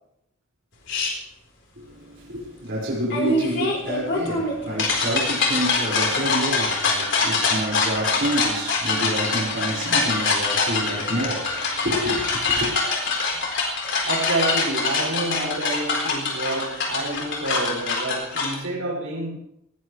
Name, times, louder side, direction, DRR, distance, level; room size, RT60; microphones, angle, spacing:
sound 1, 0.9-1.1 3.1-18.6, left 3 dB, 60° left, 4.2 m, -24 dB
voice 1, 1.8-12.7, right 1 dB, 55° right, 5.5 m, -28 dB
voice 2, 14.0-19.4, right 2 dB, 85° right, 6.9 m, -28 dB
19.0 x 18.0 x 3.3 m
head